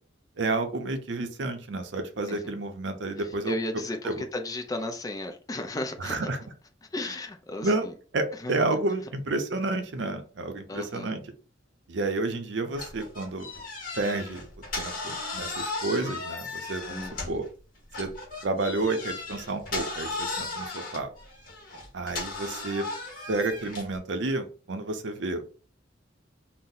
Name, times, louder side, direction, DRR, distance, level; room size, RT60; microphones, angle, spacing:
voice 1, 0.4-3.6 4.0-4.2 6.0-6.4 7.6-7.9 8.1-11.2 11.9-13.5 13.9-14.4 14.8-17.4 18.0-18.1 18.4-21.1 21.9-22.9 23.3-25.5, right 2 dB, 65° right, 0.5 m, -30 dB
voice 2, 3.2-6.1 6.9-7.9 8.4-8.7 10.7-11.1 16.9-17.4, left 2 dB, 20° left, 0.4 m, -35 dB
sound 1, 12.7-17.5 17.9-24.0, left 3 dB, 45° left, 1.0 m, -36 dB
2.7 x 2.0 x 3.8 m
head